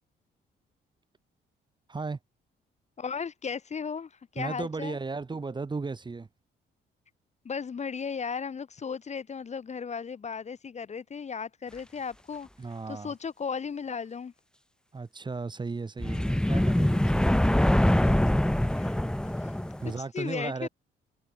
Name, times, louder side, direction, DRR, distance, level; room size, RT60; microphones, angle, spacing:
voice 1, 3.0-5.0 7.4-12.5 12.9-14.3 18.0-18.1 18.8-18.9 19.4-19.5 20.1-20.7, left 6 dB, 35° left, 0.9 m, -35 dB
voice 2, 4.4-6.3 12.6-13.1 14.9-17.3 19.8-20.7, right 4 dB, 25° right, 1.0 m, -35 dB
sound 1, 16.0-20.0, left 1 dB, 5° left, 0.9 m, -24 dB
cardioid pair, 90°, 20 cm